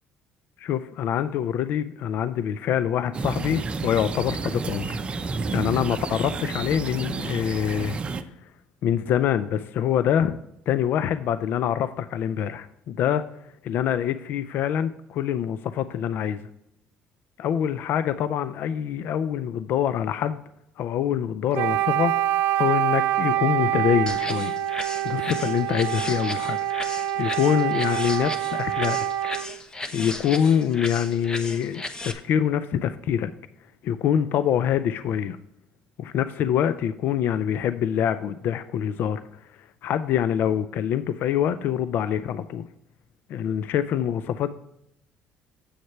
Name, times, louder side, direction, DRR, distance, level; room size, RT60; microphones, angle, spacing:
voice 1, 0.6-4.9 5.5-8.0 8.8-10.4 10.7-13.2 13.6-16.5 17.4-20.4 20.8-22.1 22.6-24.6 25.0-29.0 29.9-33.3 33.8-35.4 36.0-39.2 39.8-42.7 43.3-44.5, left 9 dB, 65° left, 13 dB, 0.4 m, -25 dB
sound 1, 3.1-8.2, right 4 dB, 30° right, 0.6 m, -30 dB
Wind instrument woodwind instrument, 21.5-29.6, right 13 dB, 80° right, 0.4 m, -26 dB
sound 2, 24.1-32.1, left 2 dB, 20° left, 0.9 m, -36 dB
8.0 x 6.4 x 4.4 m, 0.79 s
cardioid pair, 105°, 4 cm